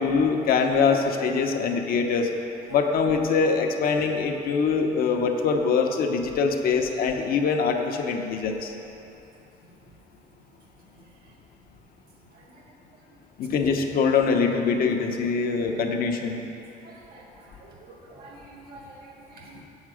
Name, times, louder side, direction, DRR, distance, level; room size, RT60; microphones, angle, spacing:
voice 1, 0.0-2.3 2.7-8.8 13.4-16.4, left 5 dB, 60° left, 3 dB, 0.7 m, -23 dB
voice 2, 16.8-17.2 17.6-17.7 18.0-19.6, right 2 dB, 60° right, -1 dB, 1.7 m, -47 dB
7.3 x 7.2 x 4.9 m, 2.9 s
cardioid pair, 110°, 17 cm